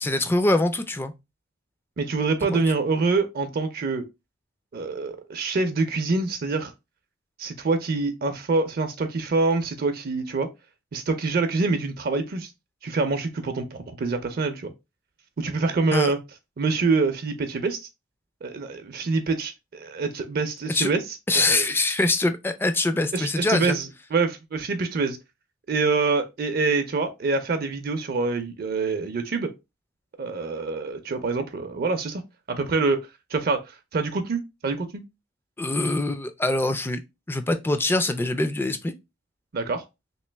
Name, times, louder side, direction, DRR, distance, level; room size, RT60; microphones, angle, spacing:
voice 1, 0.0-1.1 2.4-2.6 15.9-16.1 20.7-20.9 21.3-23.7 35.6-37.0 37.3-38.9, left 2 dB, 10° left, 0.3 m, -24 dB
voice 2, 2.0-4.1 4.7-6.7 7.4-10.5 10.9-12.5 12.8-14.7 15.4-16.2 16.6-17.8 18.4-21.0 21.3-21.7 23.1-25.2 25.7-29.5 30.2-32.2 32.5-33.0 33.3-35.0 39.5-39.8, right 3 dB, 50° right, 0.5 m, -25 dB
3.0 x 2.9 x 3.3 m
head